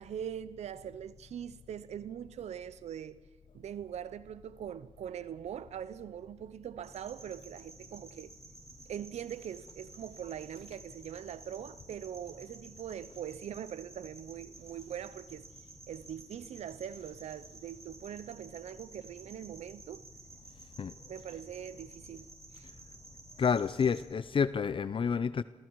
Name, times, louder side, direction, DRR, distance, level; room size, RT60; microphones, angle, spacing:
voice 1, 0.0-3.2 3.5-8.3 8.9-15.5 15.9-20.1 21.1-22.7, right 9 dB, 90° right, 0.6 m, -42 dB
sound 1, 6.8-24.0, right 2 dB, 25° right, 6.9 m, -53 dB
voice 2, 23.4-25.4, left 6 dB, 50° left, 0.6 m, -29 dB
27.5 x 21.0 x 4.6 m
cardioid pair, 85°, 11 cm